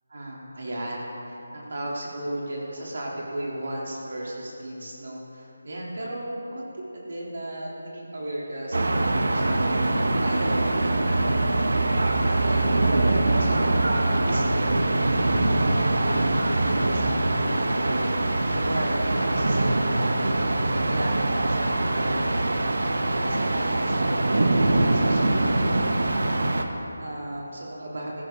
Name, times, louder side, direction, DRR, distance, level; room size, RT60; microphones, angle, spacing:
voice 1, 0.1-28.2, right 1 dB, 55° right, -4 dB, 3.3 m, -35 dB
sound 1, 8.7-26.6, right 2 dB, 75° right, 1.2 m, -23 dB
15.0 x 13.0 x 3.9 m, 3.0 s
figure-of-eight pair, 175°, 0 cm